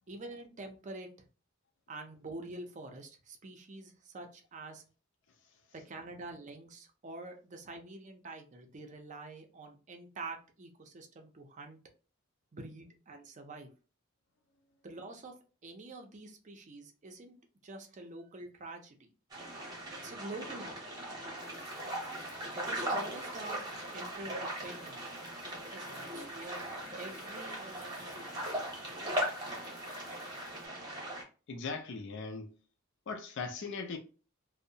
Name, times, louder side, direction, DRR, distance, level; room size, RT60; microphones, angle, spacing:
voice 1, 0.1-1.1 1.9-4.8 5.7-11.8 12.5-13.7 14.8-17.3 17.6-19.1 20.0-20.9 22.6-23.6 23.9-25.0 25.7-26.6 27.0-29.2, right 2 dB, 35° right, 0.5 m, -47 dB
sound 1, 19.3-31.2, right 1 dB, 20° right, 0.8 m, -39 dB
sound 2, 21.4-30.7, left 2 dB, 85° left, 0.9 m, -55 dB
voice 2, 31.5-32.5 33.1-34.0, left 4 dB, 60° left, 0.4 m, -39 dB
2.6 x 2.0 x 2.6 m
head